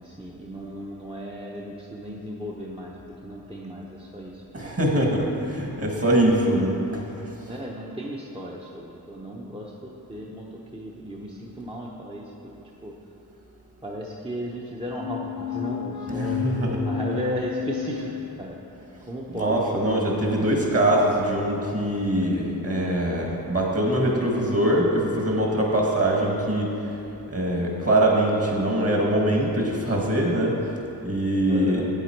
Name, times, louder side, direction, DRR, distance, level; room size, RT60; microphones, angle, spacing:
voice 1, 0.0-2.9 3.2-4.7 6.1-6.7 7.5-12.2 12.8-12.9 13.8-16.4 16.8-18.6 19.1-19.6 31.5-31.8, equal, 15° right, -3 dB, 0.8 m, -35 dB
voice 2, 4.5-7.3 16.1-16.9 19.3-26.7 27.3-30.5 31.0-31.8, right 1 dB, 35° right, -1 dB, 1.8 m, -23 dB
sound 1, 15.0-18.7, left 9 dB, 55° left, 0.6 m, -32 dB
8.1 x 8.1 x 4.6 m, 2.9 s
cardioid pair, 60°, 39 cm